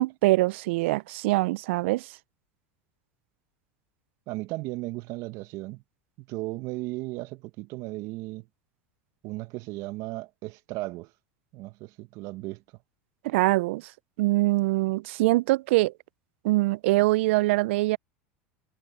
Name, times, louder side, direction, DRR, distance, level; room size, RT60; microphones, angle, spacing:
voice 1, 0.0-2.1 13.2-13.8 14.2-15.9 16.4-18.0, right 20 dB, 75° right, 0.4 m, -23 dB
voice 2, 4.3-5.8 6.2-8.5 9.2-11.1 11.5-12.6, right 20 dB, 60° right, 1.6 m, -36 dB
hypercardioid pair, 100°, 7 cm